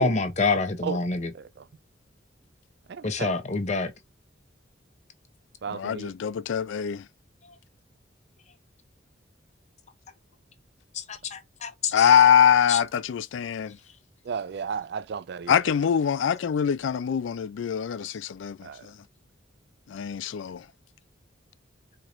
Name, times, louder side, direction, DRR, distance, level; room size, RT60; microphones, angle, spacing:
voice 1, 0.0-1.3 3.0-3.9 10.9-12.2 12.7-12.8 18.1-18.2, left 3 dB, 35° left, 0.7 m, -27 dB
voice 2, 1.3-1.7 2.9-3.3 5.6-6.1 14.2-15.6 18.6-18.9, right 6 dB, 60° right, 0.3 m, -34 dB
voice 3, 5.7-7.1 11.9-13.8 15.5-19.0 19.9-20.7, left 8 dB, 75° left, 0.4 m, -23 dB
4.6 x 2.9 x 2.5 m
head